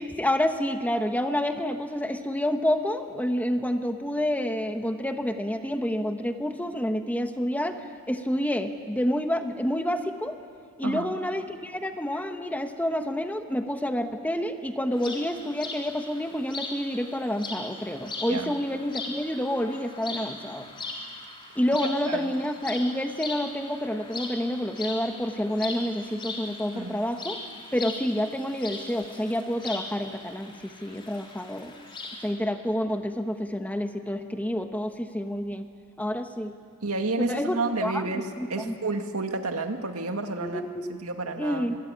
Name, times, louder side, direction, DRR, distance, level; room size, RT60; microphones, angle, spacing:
voice 1, 0.0-7.8 8.1-10.4 10.8-20.7 21.5-27.4 27.7-31.7 32.2-35.7 36.0-36.5 37.2-38.7 40.4-41.0 41.4-41.8, equal, 5° left, 6 dB, 1.1 m, -28 dB
sound 1, 14.9-32.3, left 3 dB, 25° left, 3.7 m, -39 dB
voice 2, 21.8-22.3 26.7-27.0 36.8-41.7, right 3 dB, 80° right, 5 dB, 2.1 m, -31 dB
25.5 x 22.5 x 9.8 m, 2.2 s
head